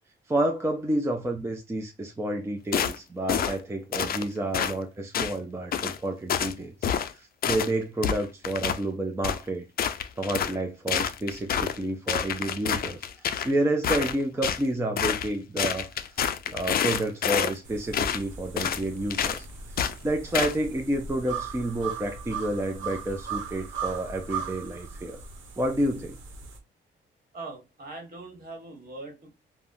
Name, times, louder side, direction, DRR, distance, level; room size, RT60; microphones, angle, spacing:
voice 1, 0.3-9.7 10.2-16.2 16.5-19.5 19.7-25.2 25.6-26.2, right 1 dB, 15° right, 0.5 m, -30 dB
sound 1, 2.7-3.0 3.3-3.6 3.9-4.2 4.5-4.7 5.1-5.4 5.7-6.0 6.3-6.5 6.8-7.1 7.4-7.7 8.0-8.8 9.2-9.4 9.8-10.6 10.9-11.8 12.1-13.5 13.8-14.6 15.0-15.3 15.6-17.5 17.9-18.2 18.6-18.8 19.1-19.4 19.8-19.9 20.3-20.5, left 8 dB, 50° left, 0.4 m, -27 dB
sound 2, 17.6-26.6, right 6 dB, 75° right, 0.9 m, -38 dB
voice 2, 27.3-29.4, right 2 dB, 50° right, 1.3 m, -41 dB
3.5 x 2.1 x 2.5 m
cardioid pair, 105°, 20 cm